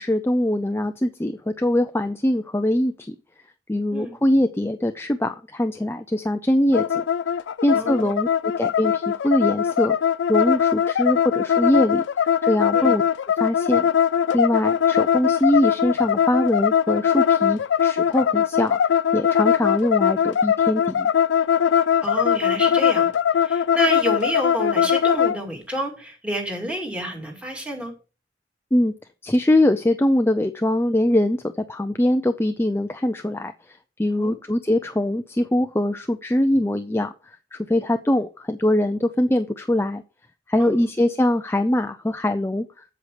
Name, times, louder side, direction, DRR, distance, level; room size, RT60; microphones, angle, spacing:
voice 1, 0.0-3.1 3.7-7.0 7.6-10.0 10.3-12.0 12.4-13.0 13.4-13.9 14.3-18.8 19.1-21.1 28.7-28.9 29.2-31.4 31.7-33.5 34.0-37.1 37.5-40.0 40.5-42.6, left 1 dB, 15° left, 8 dB, 0.4 m, -22 dB
sound 1, 6.7-25.4, left 8 dB, 85° left, 0.3 m, -21 dB
voice 2, 7.7-8.1 12.7-13.0 22.0-23.1 23.4-27.9 34.2-34.4 40.6-40.8, equal, 5° right, 1 dB, 2.4 m, -29 dB
8.1 x 7.8 x 4.9 m, 0.35 s
head